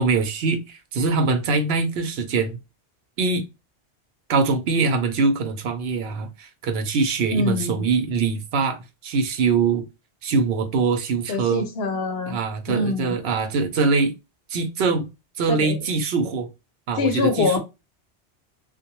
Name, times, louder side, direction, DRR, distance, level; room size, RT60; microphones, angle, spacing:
voice 1, 0.0-2.6 3.2-3.4 4.3-9.9 10.2-11.6 12.3-14.1 14.5-15.1 15.4-16.5 16.9-17.6, right 4 dB, 70° right, 0.8 m, -23 dB
voice 2, 7.3-7.9 11.3-12.4 12.7-13.2 15.5-15.8 17.0-17.6, left 3 dB, 70° left, 0.8 m, -24 dB
2.2 x 2.1 x 2.9 m
omnidirectional pair, 1.1 m